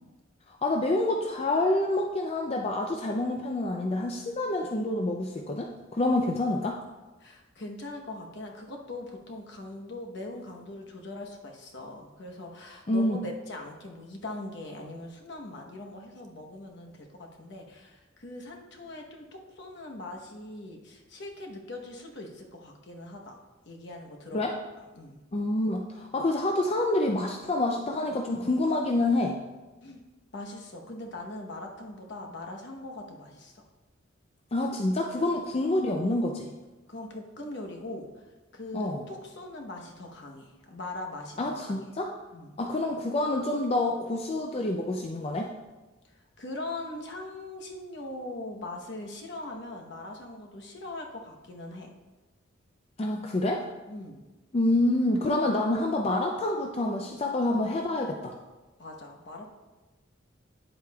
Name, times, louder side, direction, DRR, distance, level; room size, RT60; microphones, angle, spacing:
voice 1, 0.5-6.8 12.9-13.2 24.3-24.5 25.3-29.4 34.5-36.5 38.7-39.0 41.4-42.1 42.6-45.5 53.0-53.7 54.5-58.4, left 2 dB, 30° left, 1 dB, 0.4 m, -27 dB
voice 2, 7.2-23.4 23.7-24.5 24.9-25.2 29.8-30.0 30.3-33.6 36.9-38.1 38.5-41.8 42.3-42.6 46.4-51.9 53.9-54.2 58.8-59.5, left 2 dB, 60° left, 1 dB, 1.0 m, -41 dB
9.7 x 7.8 x 2.3 m, 1.2 s
head